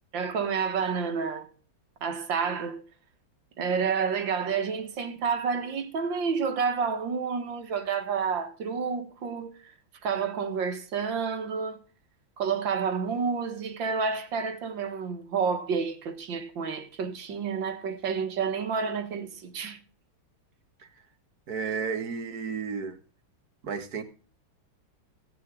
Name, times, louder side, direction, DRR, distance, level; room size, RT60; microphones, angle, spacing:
voice 1, 0.1-1.5 2.0-2.8 3.6-9.7 10.0-11.8 12.4-19.8, right 6 dB, 65° right, 2.1 m, -29 dB
voice 2, 21.5-23.0 23.6-24.0, right 5 dB, 50° right, 1.8 m, -32 dB
16.5 x 9.5 x 3.7 m
omnidirectional pair, 2.3 m